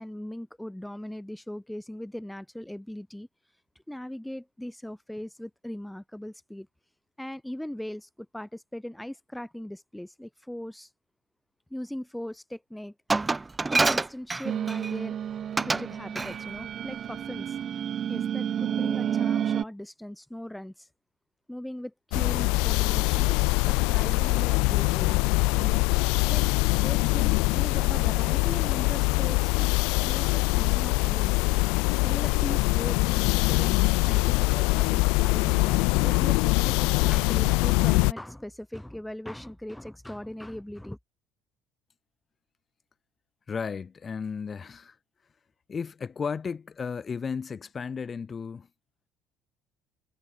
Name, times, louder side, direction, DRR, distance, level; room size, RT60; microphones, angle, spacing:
voice 1, 0.0-3.3 3.9-6.7 7.2-10.9 11.7-12.9 13.7-15.2 15.6-17.6 18.1-20.9 21.5-25.2 25.5-25.8 26.3-26.5 26.7-29.7 30.0-31.3 32.0-41.0, left 1 dB, 5° left, 5.8 m, -39 dB
Glass, 13.1-14.9 15.6-15.9 16.1-16.4, right 3 dB, 20° right, 1.4 m, -26 dB
sound 1, 14.4-19.6, right 9 dB, 50° right, 2.2 m, -30 dB
sound 2, 22.1-38.1, left 29 dB, 70° left, 0.8 m, -23 dB
voice 2, 43.5-45.0 45.7-48.7, left 6 dB, 35° left, 6.3 m, -34 dB
hypercardioid pair, 65°, 0 cm